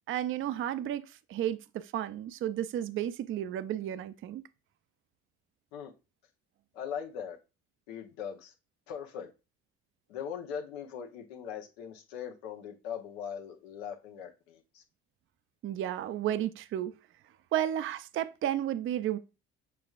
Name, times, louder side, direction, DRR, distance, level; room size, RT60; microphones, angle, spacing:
voice 1, 0.1-4.4 15.6-16.9 17.5-19.2, right 11 dB, 45° right, 0.4 m, -32 dB
voice 2, 6.7-7.4 7.9-8.5 8.9-9.3 10.1-14.8, left 8 dB, 85° left, 0.9 m, -40 dB
6.8 x 3.2 x 2.4 m
supercardioid pair, 70°, 30 cm